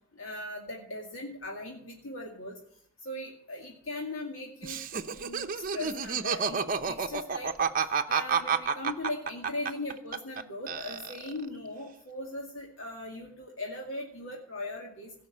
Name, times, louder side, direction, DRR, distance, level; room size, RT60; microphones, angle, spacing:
voice 1, 0.1-2.5 3.0-4.8 5.2-7.7 8.1-15.1, left 2 dB, 70° left, -1 dB, 2.3 m, -39 dB
Laughter, 4.6-10.4 10.7-11.5, right 6 dB, 40° right, 0.7 m, -30 dB
17.0 x 5.9 x 8.5 m, 0.64 s
head